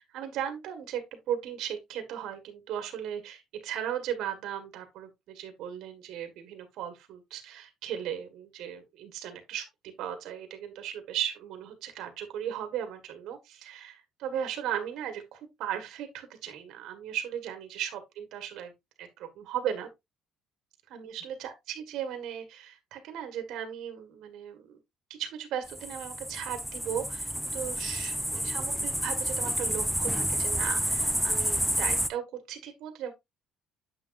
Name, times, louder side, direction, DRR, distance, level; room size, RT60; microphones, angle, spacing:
voice 1, 0.0-18.7 19.0-19.9 20.9-24.8 25.1-33.1, right 9 dB, 70° right, 1.6 m, -37 dB
sound 1, 25.7-32.1, equal, ahead, 0.7 m, -30 dB
8.7 x 6.3 x 2.6 m
cardioid pair, 105°, 0 cm